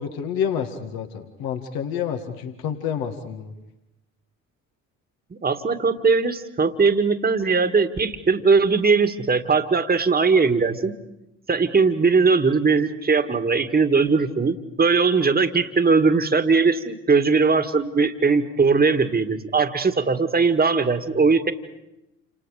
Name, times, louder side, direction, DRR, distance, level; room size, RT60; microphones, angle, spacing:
voice 1, 0.0-3.5, left 8 dB, 60° left, 6 dB, 2.0 m, -28 dB
voice 2, 5.3-10.9 11.5-21.5, right 4 dB, 20° right, 8 dB, 2.0 m, -20 dB
29.5 x 27.5 x 5.1 m, 0.91 s
figure-of-eight pair, 55°, 41 cm